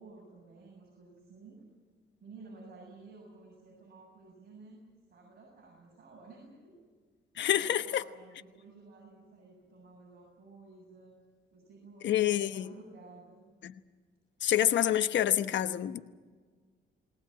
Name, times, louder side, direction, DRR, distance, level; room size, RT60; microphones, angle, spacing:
voice 1, 0.0-1.6 2.2-4.8 5.1-6.8 7.5-11.2 11.5-13.4, right 3 dB, 50° right, -1 dB, 7.7 m, -53 dB
voice 2, 7.4-8.0 12.0-12.7 13.6-13.7 14.4-16.0, left 11 dB, 65° left, 10 dB, 1.1 m, -27 dB
20.0 x 19.0 x 8.9 m, 1.5 s
cardioid pair, 90°, 20 cm